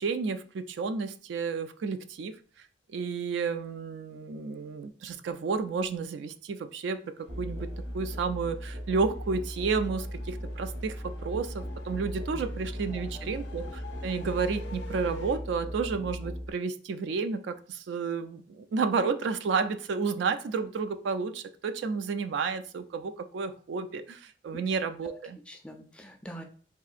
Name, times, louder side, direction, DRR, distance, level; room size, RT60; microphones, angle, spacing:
voice 1, 0.0-2.3 2.9-7.7 7.9-25.4, right 5 dB, 75° right, 10 dB, 0.3 m, -31 dB
sound 1, 7.2-15.4, left 1 dB, 75° left, 0.5 m, -49 dB
Musical instrument, 7.3-16.5, equal, 50° right, 1.1 m, -38 dB
voice 2, 12.9-13.4 24.5-24.6 25.0-25.2 25.5-26.4, equal, 5° left, 4 dB, 0.3 m, -45 dB
3.6 x 2.5 x 2.4 m, 0.43 s
head